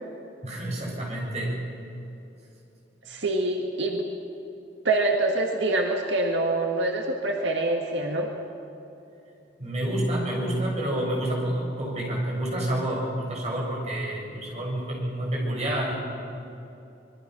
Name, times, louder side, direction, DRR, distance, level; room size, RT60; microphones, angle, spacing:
voice 1, 0.4-1.6 9.6-15.9, right 1 dB, 35° right, -3 dB, 7.0 m, -28 dB
voice 2, 3.1-4.0 4.8-8.3, right 2 dB, 85° right, 1 dB, 1.9 m, -25 dB
25.5 x 22.0 x 6.1 m, 2.8 s
head